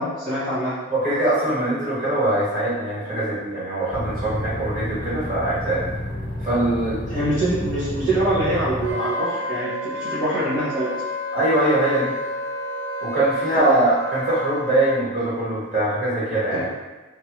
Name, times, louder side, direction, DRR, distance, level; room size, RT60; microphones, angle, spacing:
voice 1, 0.0-0.7 7.1-9.7 10.0-10.9 13.6-13.7 16.5-16.6, right 1 dB, 20° right, -14 dB, 0.8 m, -24 dB
voice 2, 0.9-5.9 6.4-7.0 11.3-12.1 13.0-16.6, right 1 dB, 40° right, -9 dB, 1.1 m, -22 dB
sound 1, 3.9-8.9, left 1 dB, 25° left, 0.4 m, -30 dB
Wind instrument woodwind instrument, 8.8-15.0, left 1 dB, 60° right, 0.5 m, -30 dB
2.5 x 2.3 x 2.9 m, 1.2 s
head